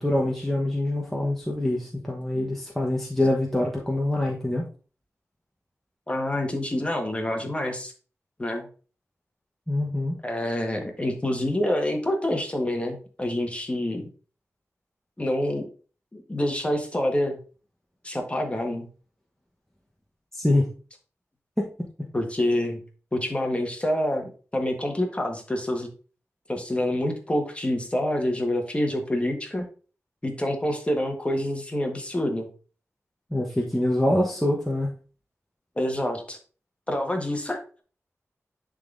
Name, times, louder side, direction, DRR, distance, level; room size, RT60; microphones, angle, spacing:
voice 1, 0.0-4.6 9.7-10.2 20.3-20.7 21.6-21.7 33.3-34.9, left 1 dB, 5° left, -2 dB, 1.0 m, -25 dB
voice 2, 6.1-7.9 8.4-8.7 10.2-14.1 15.2-15.6 16.1-17.4 18.0-18.9 22.1-22.8 23.1-25.9 26.5-29.7 30.2-32.5 35.8-36.4 36.9-37.8, left 1 dB, 20° left, 3 dB, 1.3 m, -27 dB
10.5 x 3.8 x 2.5 m, 0.38 s
wide cardioid pair, 80°, 5 cm